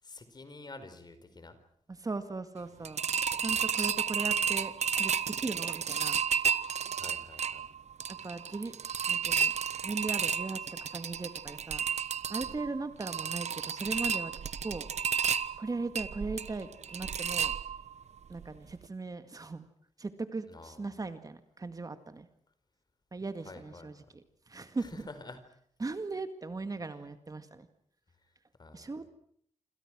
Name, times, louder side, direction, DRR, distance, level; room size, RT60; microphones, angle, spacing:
voice 1, 0.0-1.6 3.5-3.7 6.9-7.7 12.4-12.6 20.5-21.0 23.4-23.9 24.7-25.4 28.6-28.9, left 3 dB, 35° left, 10 dB, 4.6 m, -49 dB
voice 2, 1.9-3.0 3.4-6.2 8.1-8.7 9.1-9.5 9.8-11.8 12.3-14.9 15.6-17.5 18.3-19.7 20.0-22.3 23.1-23.9 24.5-25.0 25.8-27.7 28.7-29.1, right 3 dB, 30° right, 10 dB, 2.0 m, -38 dB
sound 1, 2.8-18.0 18.4-18.5 18.8-18.9, right 7 dB, 65° right, 1.2 m, -32 dB
27.5 x 27.0 x 6.2 m, 0.64 s
wide cardioid pair, 130°, 12 cm